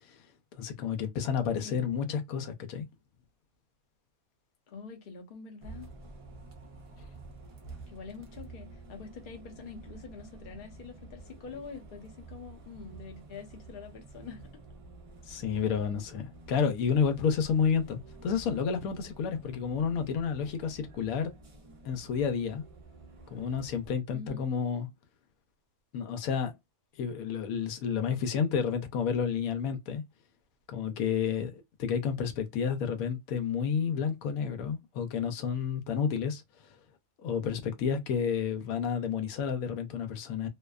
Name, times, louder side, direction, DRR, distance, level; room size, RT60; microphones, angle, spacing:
voice 1, 0.5-2.9 15.3-21.3 21.8-22.6 23.3-24.9 25.9-26.5 27.0-30.0 30.7-36.4 37.2-40.5, left 7 dB, 85° left, 1.0 m, -30 dB
voice 2, 4.7-5.9 7.9-14.5 24.1-24.5, left 5 dB, 45° left, 0.8 m, -45 dB
Bus, 5.6-23.9, right 3 dB, 60° right, 0.3 m, -50 dB
2.6 x 2.2 x 2.3 m
omnidirectional pair, 1.5 m